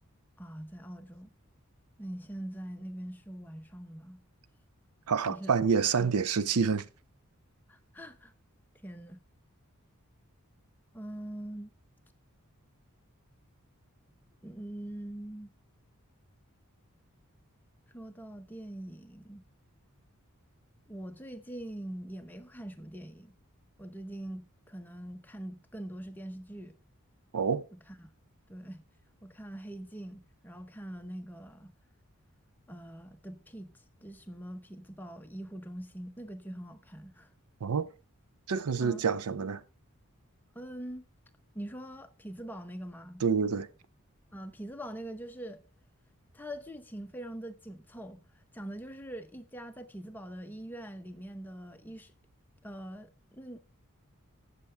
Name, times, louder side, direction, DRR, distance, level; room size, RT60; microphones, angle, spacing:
voice 1, 0.4-1.3 2.0-4.2 5.3-5.5 6.0-6.1 7.7-8.3 8.8-9.2 10.9-11.7 14.4-15.5 17.9-19.4 20.9-23.4 23.8-26.8 27.7-28.1 28.5-28.8 29.2-31.7 32.7-37.3 38.8-39.0 40.5-41.1 41.5-43.2 44.3-45.6 46.3-48.2 48.5-52.1 52.6-53.6, right 1 dB, 10° left, 0.8 m, -43 dB
voice 2, 5.1-6.9 27.3-27.7 37.6-37.9 38.5-39.6 43.2-43.7, right 5 dB, 85° right, 0.6 m, -27 dB
15.5 x 6.7 x 3.3 m
head